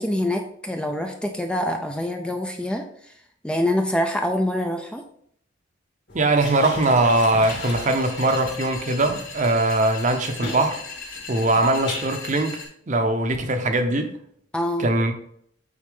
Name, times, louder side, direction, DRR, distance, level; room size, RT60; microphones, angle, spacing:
voice 1, 0.0-2.9 3.4-5.0 14.5-14.9, left 1 dB, 5° left, 0.4 m, -25 dB
sound 1, 6.1-12.0, left 2 dB, 60° left, 2.6 m, -37 dB
voice 2, 6.1-10.8 11.3-12.6 12.9-14.1 14.8-15.1, right 2 dB, 40° right, 0.8 m, -21 dB
sound 2, 7.5-12.7, left 4 dB, 80° left, 3.0 m, -38 dB
8.4 x 3.9 x 3.7 m
head